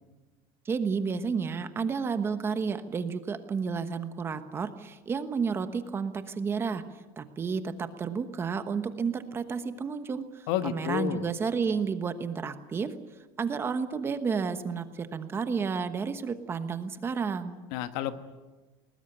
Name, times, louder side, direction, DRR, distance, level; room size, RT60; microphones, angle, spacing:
voice 1, 0.6-6.8 7.2-12.9 13.4-17.6, right 5 dB, 20° right, 10 dB, 1.1 m, -31 dB
voice 2, 10.5-11.3 17.7-18.2, left 11 dB, 70° left, 10 dB, 1.5 m, -30 dB
21.0 x 20.0 x 9.9 m, 1.2 s
cardioid pair, 175°, 13 cm